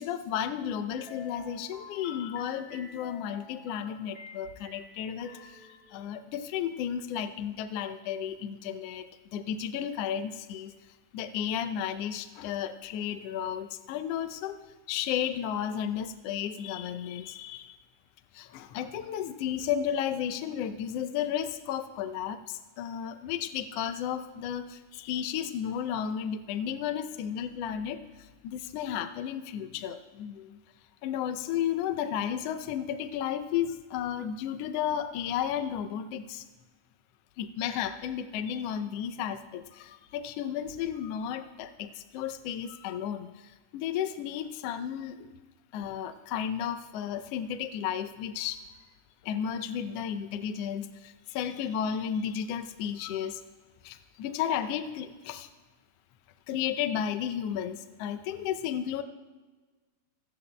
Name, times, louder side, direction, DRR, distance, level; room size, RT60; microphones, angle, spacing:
voice 1, 0.0-10.7 11.1-14.6 14.9-17.7 18.3-30.6 31.0-36.5 37.4-45.3 45.7-48.6 49.2-53.4 53.8-55.5 56.5-59.0, left 9 dB, 75° left, 10 dB, 1.5 m, -33 dB
sound 1, 1.0-6.3, left 4 dB, 20° left, 2.3 m, -49 dB
16.5 x 15.5 x 2.2 m, 1.3 s
omnidirectional pair, 3.3 m